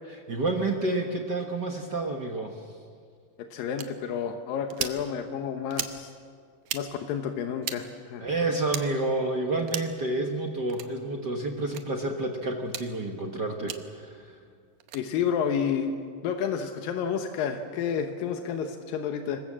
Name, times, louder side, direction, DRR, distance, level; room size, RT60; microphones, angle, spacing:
voice 1, 0.1-2.6 8.2-14.3, right 2 dB, 55° right, 3 dB, 1.2 m, -29 dB
voice 2, 3.4-6.1 6.7-8.2 14.9-15.9 16.2-19.4, left 7 dB, 90° left, 6 dB, 2.8 m, -30 dB
sound 1, 3.8-3.9 4.7-5.0 5.7-6.0 6.6-6.8 7.6-7.8 8.7-8.9 9.7-10.0 10.7-10.9 11.7-11.8 12.6-12.9 13.7-13.8 14.8-15.0, right 11 dB, 70° right, 2.3 m, -34 dB
26.0 x 21.5 x 7.5 m, 2.1 s
omnidirectional pair, 3.9 m